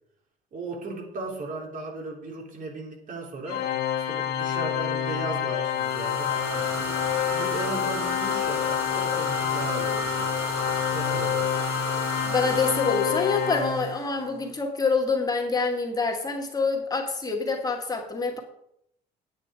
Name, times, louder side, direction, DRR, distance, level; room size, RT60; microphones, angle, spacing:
voice 1, 0.5-3.7 4.0-7.0 7.3-10.3 10.8-11.5, right 2 dB, 50° right, 1 dB, 3.4 m, -36 dB
Organ, 3.5-14.2, left 9 dB, 70° left, 1.8 m, -28 dB
sound 1, 5.7-14.2, right 1 dB, 15° right, 3.0 m, -34 dB
voice 2, 12.3-18.4, left 4 dB, 20° left, 2 dB, 2.1 m, -26 dB
9.4 x 9.3 x 4.9 m, 0.73 s
cardioid pair, 110°, 17 cm